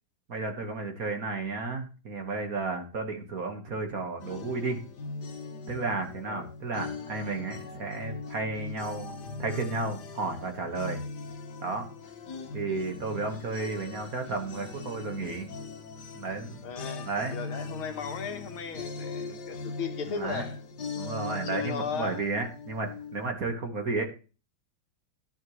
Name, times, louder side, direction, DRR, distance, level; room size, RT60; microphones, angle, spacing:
voice 1, 0.3-4.8 5.7-11.0 11.6-11.9 12.5-15.5 16.2-16.6 17.0-17.3 20.1-20.4 20.9-24.0, right 3 dB, 45° right, 1.8 m, -33 dB
sound 1, 4.2-23.3, left 4 dB, 55° left, 1.7 m, -40 dB
voice 2, 16.6-20.6 21.2-22.2, left 6 dB, 75° left, 2.1 m, -36 dB
12.0 x 11.0 x 3.1 m
omnidirectional pair, 2.4 m